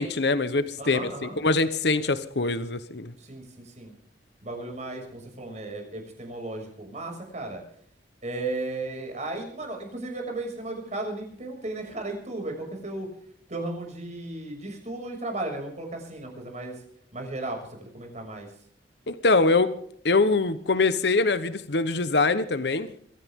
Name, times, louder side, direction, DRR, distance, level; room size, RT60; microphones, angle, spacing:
voice 1, 0.0-3.1 19.1-19.7 20.0-22.9, left 3 dB, 65° left, 12 dB, 1.0 m, -23 dB
voice 2, 0.8-1.4 3.2-3.9 4.4-7.6 8.2-13.1 13.5-16.8 17.1-18.5, right 2 dB, 40° right, 3 dB, 6.4 m, -35 dB
23.0 x 16.5 x 3.7 m, 0.64 s
head